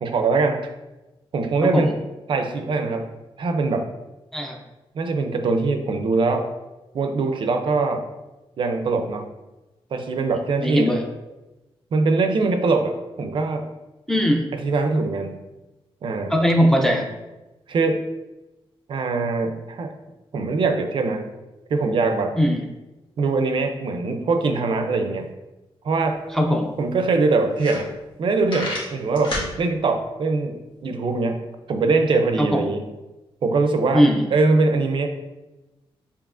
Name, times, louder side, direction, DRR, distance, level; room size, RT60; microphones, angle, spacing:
voice 1, 0.0-0.7 1.3-1.9 2.3-3.1 3.4-3.9 4.9-6.5 6.9-8.0 8.6-9.3 9.9-10.9 11.9-13.7 14.6-15.4 16.0-16.3 17.7-18.0 18.9-19.9 20.3-21.3 21.7-22.4 23.2-25.3 25.8-26.2 26.8-27.9 28.2-32.8 33.4-35.1, right 3 dB, 55° right, 7 dB, 0.4 m, -22 dB
voice 2, 1.6-1.9 4.3-4.6 10.6-11.1 14.1-14.5 16.3-17.1 22.4-22.6 26.3-26.7 32.4-32.7 33.9-34.3, equal, 5° left, 1 dB, 0.4 m, -19 dB
sound 1, 26.1-26.2 26.5-26.6 27.1-27.2 27.5-28.2 28.5-29.5, left 2 dB, 55° left, 1.2 m, -30 dB
6.9 x 2.8 x 2.4 m, 1.0 s
wide cardioid pair, 180°, 10 cm